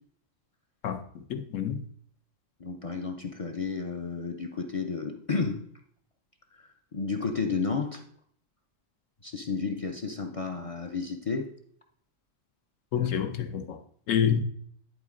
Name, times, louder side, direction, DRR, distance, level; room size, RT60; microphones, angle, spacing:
voice 1, 0.8-1.8 12.9-13.8 14.1-14.4, left 8 dB, 80° left, 8 dB, 1.2 m, -28 dB
voice 2, 2.6-5.6 6.5-6.6 6.9-8.0 9.2-11.5 12.9-13.1, left 4 dB, 40° left, 4 dB, 0.5 m, -32 dB
10.0 x 4.0 x 3.7 m, 0.62 s
omnidirectional pair, 1.3 m